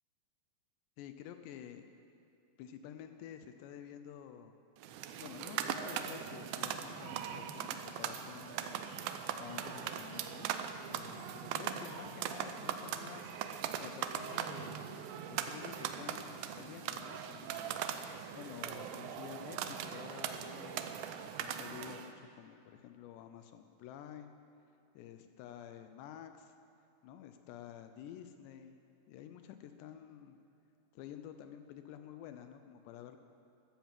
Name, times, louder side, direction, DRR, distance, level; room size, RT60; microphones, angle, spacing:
voice 1, 1.0-1.9 2.6-4.5 5.2-8.8 9.4-10.5 10.8-13.3 13.8-14.9 15.3-17.9 18.3-24.3 24.9-26.5 27.0-28.8 29.1-30.4 30.9-33.2, left 10 dB, 85° left, 8 dB, 2.8 m, -50 dB
sound 1, 4.8-22.1, right 9 dB, 85° right, 2.1 m, -40 dB
sound 2, 8.6-23.2, right 1 dB, 5° right, 4.6 m, -65 dB
14.5 x 13.0 x 7.5 m, 2.5 s
omnidirectional pair, 5.0 m